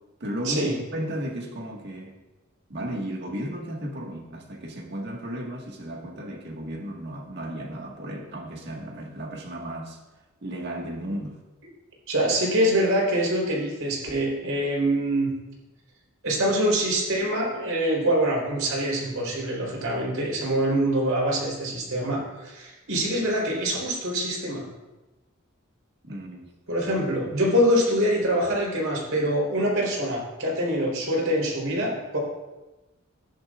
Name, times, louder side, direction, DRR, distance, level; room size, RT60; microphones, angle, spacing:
voice 1, 0.2-2.2 2.7-10.0 10.4-11.4 26.0-26.5, right 1 dB, 55° right, 1.7 m, -34 dB
voice 2, 12.1-15.3 16.2-24.6 26.7-32.2, equal, 85° right, 4.0 m, -24 dB
15.0 x 10.5 x 2.5 m
head